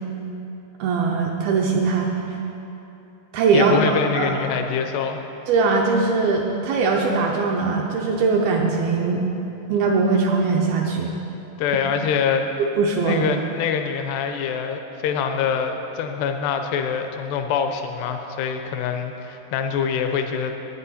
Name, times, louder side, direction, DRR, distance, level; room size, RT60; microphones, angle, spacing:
voice 1, 0.8-2.1 3.3-4.4 5.5-9.2 9.7-11.1 12.8-13.2, right 4 dB, 80° right, 0 dB, 2.3 m, -21 dB
voice 2, 3.5-5.2 11.6-12.5 13.0-20.5, left 6 dB, 80° left, 6 dB, 2.7 m, -24 dB
16.5 x 9.9 x 4.3 m, 2.9 s
omnidirectional pair, 5.0 m